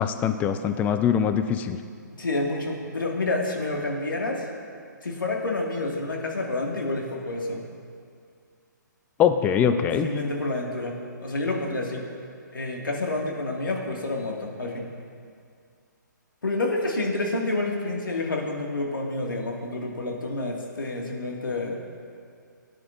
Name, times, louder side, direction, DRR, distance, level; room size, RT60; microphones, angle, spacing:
voice 1, 0.0-1.8 9.2-10.1, left 8 dB, 15° left, 9 dB, 0.4 m, -22 dB
voice 2, 2.1-4.5 5.0-7.7 10.0-12.0 12.5-14.9 16.4-21.8, left 2 dB, 85° left, 0 dB, 2.0 m, -29 dB
17.5 x 10.0 x 2.6 m, 2.2 s
hypercardioid pair, 135°, 11 cm